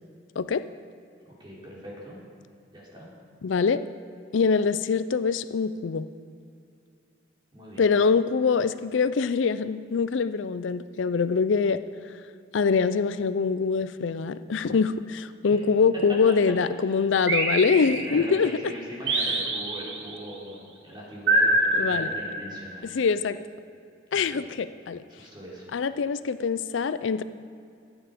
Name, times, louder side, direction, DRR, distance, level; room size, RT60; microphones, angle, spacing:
voice 1, 1.4-2.2 2.7-3.1 7.5-7.8 15.5-15.6 17.9-22.9 24.1-24.5 25.1-25.6, equal, 25° right, -5 dB, 3.4 m, -41 dB
voice 2, 3.4-3.8 4.3-6.1 7.8-11.8 12.5-18.5 21.8-22.1 22.8-23.4 24.1-25.0 25.7-27.2, left 5 dB, 80° left, 13 dB, 0.4 m, -24 dB
sound 1, 17.3-18.4 19.1-20.2 21.3-22.7, right 1 dB, 70° right, 1.7 m, -25 dB
16.0 x 9.0 x 5.1 m, 2.4 s
head